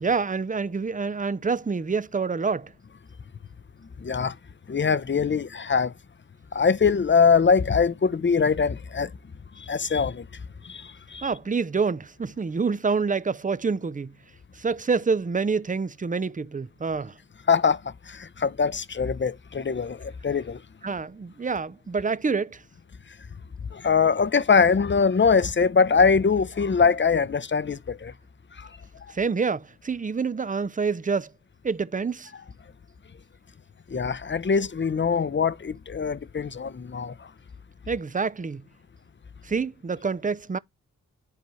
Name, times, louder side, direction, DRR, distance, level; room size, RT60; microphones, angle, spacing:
voice 1, 0.0-2.7 11.2-14.1 14.5-17.2 20.8-22.6 29.1-31.3 31.6-32.3 37.9-38.6 39.4-40.6, right 5 dB, 25° right, 0.6 m, -27 dB
voice 2, 4.0-4.4 4.7-5.9 6.5-9.1 9.6-10.3 10.6-11.3 17.5-20.6 23.7-28.1 28.6-28.7 33.9-37.3, left 5 dB, 30° left, 0.7 m, -23 dB
11.0 x 4.4 x 3.1 m
cardioid pair, 40°, 36 cm